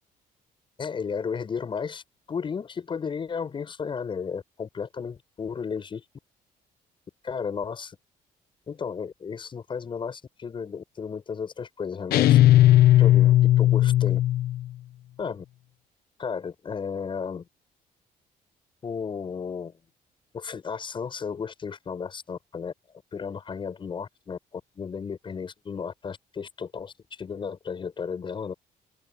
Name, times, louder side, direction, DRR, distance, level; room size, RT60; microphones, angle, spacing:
voice 1, 0.8-2.0 2.3-6.0 7.2-8.0 8.7-12.4 13.0-14.2 15.2-15.4 16.2-17.5 18.8-19.8 20.3-22.7 23.1-28.5, left 6 dB, 30° left, 8.0 m, -34 dB
sound 1, 12.1-14.7, left 13 dB, 85° left, 0.9 m, -17 dB
open air
cardioid pair, 155°, 16 cm